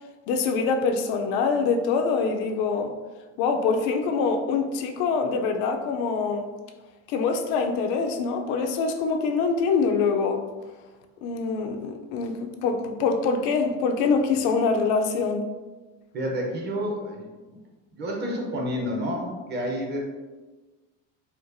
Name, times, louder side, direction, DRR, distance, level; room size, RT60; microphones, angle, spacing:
voice 1, 0.3-2.9 3.4-6.5 7.1-10.4 11.2-15.5, left 4 dB, 80° left, 5 dB, 0.5 m, -24 dB
voice 2, 16.1-17.6 17.9-20.0, equal, 30° right, -1 dB, 0.7 m, -30 dB
4.4 x 2.3 x 2.5 m, 1.2 s
cardioid pair, 160°, 35 cm